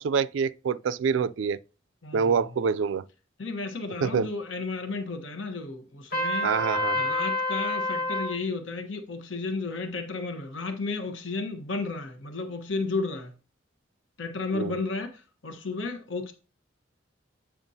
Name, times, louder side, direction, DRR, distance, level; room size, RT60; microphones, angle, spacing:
voice 1, 0.0-1.6 2.1-3.0 4.0-4.3 6.4-7.1 14.5-14.8, right 6 dB, 80° right, 0.4 m, -26 dB
voice 2, 2.0-2.4 3.4-6.5 6.9-13.3 14.2-16.3, left 3 dB, 85° left, 1.1 m, -33 dB
Trumpet, 6.1-8.4, left 1 dB, 55° left, 1.4 m, -28 dB
8.9 x 5.8 x 2.7 m
head